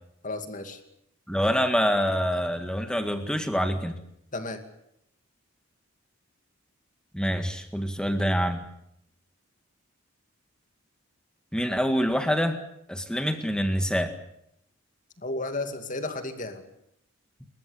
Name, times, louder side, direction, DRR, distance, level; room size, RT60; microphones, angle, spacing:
voice 1, 0.2-0.8 4.3-4.6 15.2-16.6, left 2 dB, 35° left, 7 dB, 2.5 m, -33 dB
voice 2, 1.3-4.0 7.1-8.6 11.5-12.6 12.9-14.1, equal, 5° left, 7 dB, 1.9 m, -26 dB
28.0 x 14.5 x 8.6 m, 0.78 s
head